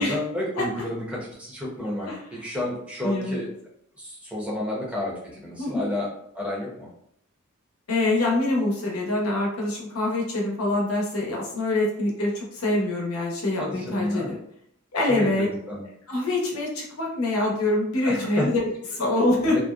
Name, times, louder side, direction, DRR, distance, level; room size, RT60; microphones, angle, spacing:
voice 1, 0.0-3.5 4.0-6.1 6.3-6.9 13.6-14.4 15.2-15.8 18.0-18.5 19.5-19.6, left 1 dB, 5° right, -5 dB, 0.6 m, -31 dB
voice 2, 3.0-3.4 5.6-5.8 7.9-14.4 14.9-15.5 16.1-19.6, left 2 dB, 80° left, -2 dB, 0.7 m, -25 dB
2.6 x 2.1 x 2.3 m, 0.69 s
head